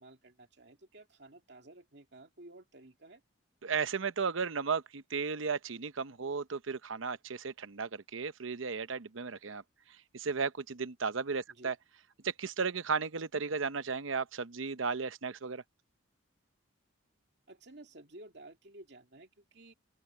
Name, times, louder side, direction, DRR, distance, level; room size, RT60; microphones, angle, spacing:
voice 1, 0.0-3.2 11.5-11.7 17.5-19.7, right 2 dB, 55° right, 2.5 m, -54 dB
voice 2, 3.6-9.6 10.1-11.8 12.2-15.6, right 5 dB, 80° right, 0.8 m, -35 dB
open air
head